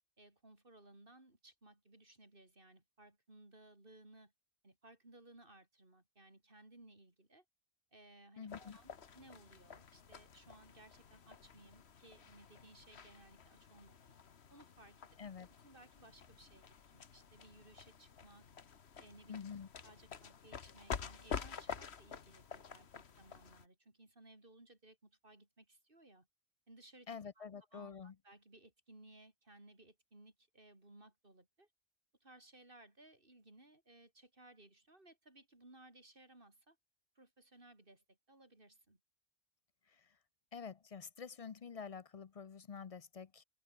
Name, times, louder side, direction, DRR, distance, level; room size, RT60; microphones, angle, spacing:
voice 1, 0.2-4.3 4.6-7.4 7.9-14.1 14.5-15.1 15.5-18.5 19.0-19.4 19.8-26.3 26.7-27.1 27.4-31.7 32.2-36.8 37.1-39.0, right 2 dB, 50° right, 4.9 m, -61 dB
voice 2, 8.4-8.8 15.2-15.5 19.3-19.7 27.1-28.1 40.5-43.4, left 6 dB, 40° left, 0.5 m, -48 dB
sound 1, 8.5-23.7, left 6 dB, 65° left, 1.5 m, -49 dB
omnidirectional pair, 1.2 m